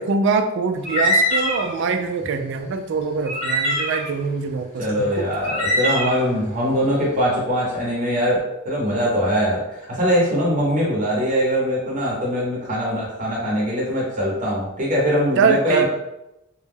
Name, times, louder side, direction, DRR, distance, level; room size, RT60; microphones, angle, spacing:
voice 1, 0.0-5.3 15.4-15.9, right 4 dB, 60° right, 6 dB, 0.3 m, -23 dB
sound 1, 0.8-1.7 2.2-2.3 3.3-4.1 4.9-5.0 5.3-6.3, equal, 35° left, 0.7 m, -22 dB
voice 2, 4.8-15.9, equal, 40° right, -4 dB, 0.7 m, -22 dB
2.2 x 2.0 x 3.2 m, 0.90 s
head